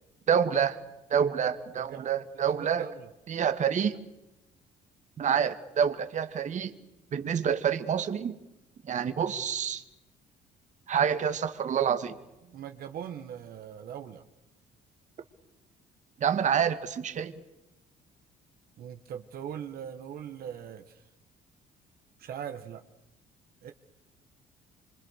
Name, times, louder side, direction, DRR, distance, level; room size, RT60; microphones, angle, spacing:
voice 1, 0.3-0.8 1.1-2.9 3.3-4.0 5.2-6.7 7.1-8.3 8.9-9.8 10.9-12.1 16.2-17.3, right 8 dB, 45° right, 9 dB, 2.0 m, -27 dB
voice 2, 1.7-2.1 2.5-3.1 5.2-5.3 12.4-14.2 18.8-21.0 22.2-22.8 23.6-23.7, right 9 dB, 60° right, 6 dB, 1.8 m, -41 dB
26.5 x 25.5 x 6.7 m, 0.94 s
cardioid pair, 110°, 17 cm